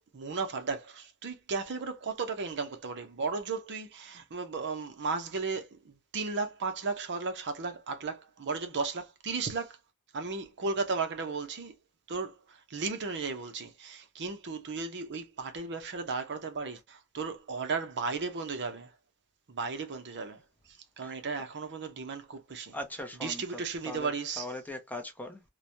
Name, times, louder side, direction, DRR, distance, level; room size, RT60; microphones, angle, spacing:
voice 1, 0.1-9.8 10.1-11.7 12.1-18.9 19.5-20.4 21.0-22.8 23.2-24.5, right 4 dB, 55° right, 0.6 m, -35 dB
voice 2, 22.7-25.4, left 1 dB, 5° left, 0.6 m, -40 dB
3.1 x 2.1 x 2.6 m
head